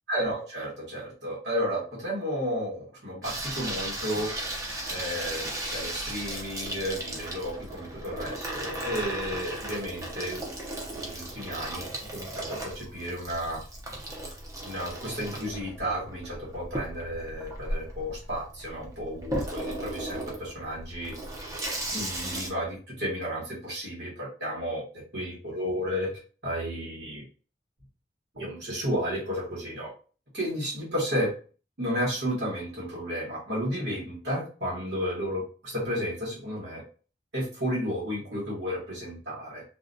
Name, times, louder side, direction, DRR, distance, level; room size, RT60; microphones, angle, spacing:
voice 1, 0.1-4.3 4.9-10.4 10.9-13.6 14.6-21.1 21.9-24.8 25.1-26.1 26.4-27.2 28.3-29.9 30.3-31.3 31.8-36.8 37.3-39.6, equal, 70° right, -5 dB, 1.0 m, -32 dB
Water tap faucet / Sink (filling or washing), 3.2-22.5, right 1 dB, 20° right, 0.5 m, -36 dB
2.3 x 2.1 x 2.5 m, 0.38 s
head